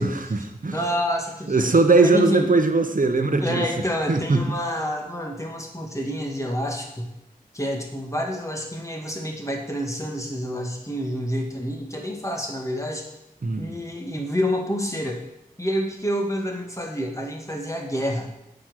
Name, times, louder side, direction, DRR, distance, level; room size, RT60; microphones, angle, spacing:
voice 1, 0.0-0.8 1.5-3.7 4.1-4.4 13.4-13.8, right 3 dB, 65° right, 6 dB, 1.0 m, -20 dB
voice 2, 0.7-2.5 3.4-7.1 7.5-13.0 13.6-15.2 15.6-18.3, equal, 20° left, 1 dB, 2.0 m, -28 dB
8.6 x 5.4 x 6.4 m, 0.85 s
wide cardioid pair, 40°, 15 cm